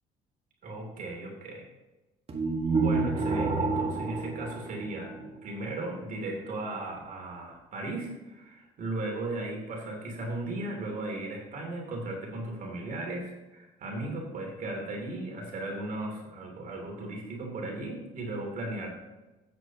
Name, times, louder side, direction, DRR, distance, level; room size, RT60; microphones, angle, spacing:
voice 1, 0.6-1.7 2.7-18.9, right 2 dB, 55° right, 0 dB, 3.1 m, -36 dB
sound 1, 2.3-5.4, right 3 dB, 35° right, 1.7 m, -29 dB
13.5 x 9.0 x 3.0 m, 1.1 s
cardioid pair, 110°, 17 cm